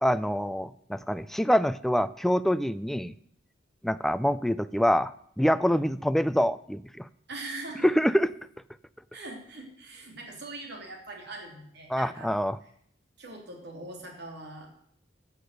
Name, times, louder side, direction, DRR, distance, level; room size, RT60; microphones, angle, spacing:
voice 1, 0.0-3.1 3.8-5.1 5.4-7.1 7.8-8.3 11.9-12.6, equal, ahead, 14 dB, 0.4 m, -25 dB
voice 2, 7.3-8.1 9.1-12.3 12.6-12.7 13.2-14.7, right 2 dB, 65° right, 1 dB, 3.0 m, -42 dB
14.5 x 6.7 x 6.5 m, 0.68 s
head